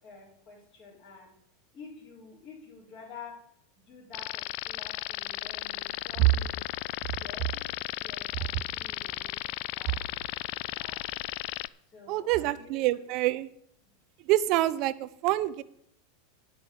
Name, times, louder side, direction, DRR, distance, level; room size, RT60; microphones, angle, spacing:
voice 1, 0.0-1.3 1.7-3.4 3.8-6.6 7.1-11.0 11.9-13.0, left 4 dB, 25° left, -9 dB, 4.5 m, -50 dB
sound 1, 4.1-11.7, left 20 dB, 55° left, 0.3 m, -35 dB
voice 2, 12.1-13.5 14.3-15.6, right 16 dB, 50° right, 16 dB, 0.6 m, -25 dB
10.0 x 6.2 x 7.9 m, 0.69 s
supercardioid pair, 125°, 0 cm